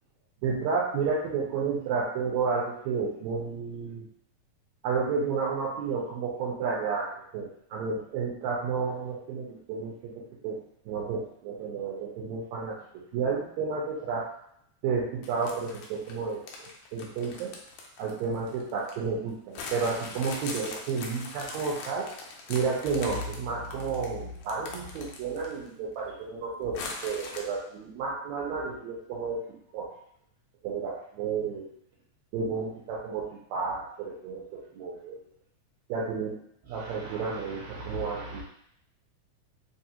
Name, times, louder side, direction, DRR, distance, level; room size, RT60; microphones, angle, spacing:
voice 1, 0.4-4.0 4.8-10.6 10.9-14.3 14.8-17.5 18.0-22.1 22.5-29.9 30.6-31.7 32.3-35.2 35.9-36.3 36.7-38.4, right 5 dB, 75° right, -4 dB, 1.8 m, -31 dB
sound 1, 15.2-19.0 19.5-25.7 26.0-26.1 26.7-27.4, left 3 dB, 75° left, 1.7 m, -41 dB
4.7 x 2.4 x 2.8 m, 0.70 s
omnidirectional pair, 3.4 m